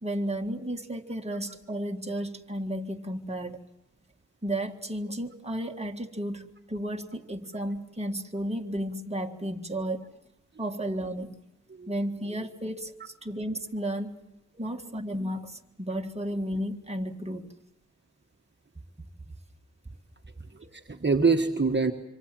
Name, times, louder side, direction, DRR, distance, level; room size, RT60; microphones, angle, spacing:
voice 1, 0.0-3.6 4.4-10.1 10.6-11.4 11.9-14.2 14.6-17.5 20.4-20.5, right 1 dB, 20° right, 3 dB, 1.8 m, -33 dB
voice 2, 14.5-14.9 20.5-21.9, right 4 dB, 35° right, 3 dB, 1.5 m, -26 dB
26.0 x 25.0 x 7.7 m, 0.90 s
wide cardioid pair, 80°, 30 cm